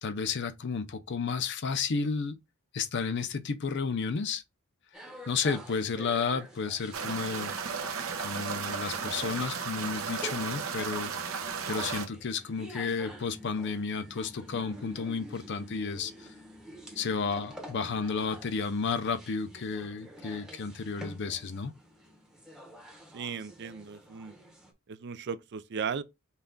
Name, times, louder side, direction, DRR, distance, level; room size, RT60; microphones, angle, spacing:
voice 1, 0.0-2.4 2.7-4.4 5.3-7.5 8.2-11.1 11.7-16.3 17.0-21.7, left 5 dB, 55° left, 0.5 m, -32 dB
sound 1, 4.9-24.7, equal, 5° right, 0.8 m, -49 dB
sound 2, 6.9-12.1, right 5 dB, 70° right, 0.8 m, -34 dB
voice 2, 23.1-24.4 24.9-26.0, right 6 dB, 55° right, 0.4 m, -36 dB
5.6 x 2.4 x 3.8 m
head